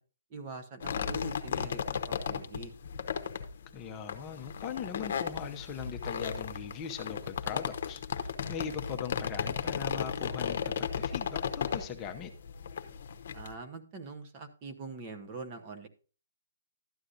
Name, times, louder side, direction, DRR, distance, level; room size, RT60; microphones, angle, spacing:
voice 1, 0.3-2.7 13.3-15.9, right 4 dB, 25° right, 5 dB, 1.0 m, -44 dB
sound 1, 0.8-13.5, left 7 dB, 50° left, 0.9 m, -35 dB
voice 2, 3.7-10.6 11.0-12.3, left 7 dB, 20° left, 4 dB, 0.8 m, -40 dB
12.5 x 9.7 x 2.6 m, 0.36 s
hypercardioid pair, 160°, 0 cm